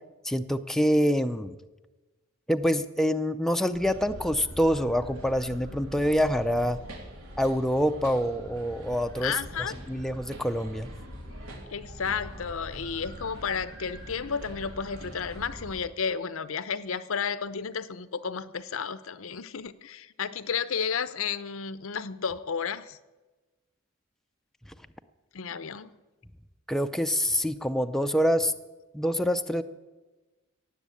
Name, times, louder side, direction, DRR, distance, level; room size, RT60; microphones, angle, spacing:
voice 1, 0.2-1.5 2.5-6.8 7.4-9.4 9.9-10.9 26.7-28.5 28.9-29.6, equal, ahead, 0.4 m, -26 dB
sound 1, 3.7-15.8, equal, 85° right, 3.1 m, -43 dB
voice 2, 9.2-9.7 11.7-23.0 25.3-25.9, left 6 dB, 75° left, 0.7 m, -32 dB
17.5 x 7.3 x 8.4 m
head